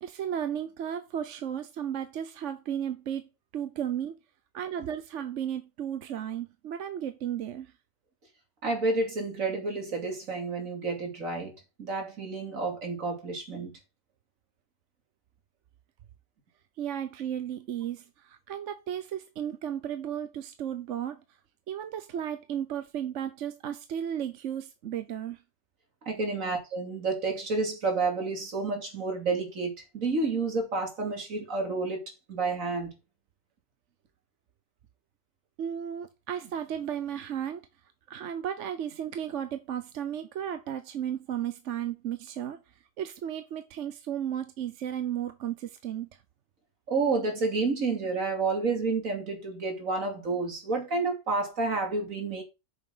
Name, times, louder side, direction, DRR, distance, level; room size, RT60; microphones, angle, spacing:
voice 1, 0.0-4.2 4.5-7.7 16.8-21.2 21.7-25.4 35.6-37.7 38.1-42.6 43.0-46.2, right 9 dB, 70° right, 1.1 m, -34 dB
voice 2, 8.6-11.5 11.8-13.7 26.1-32.0 32.3-32.9 46.9-52.4, right 3 dB, 85° right, 3.0 m, -30 dB
8.9 x 6.8 x 3.8 m
omnidirectional pair, 1.4 m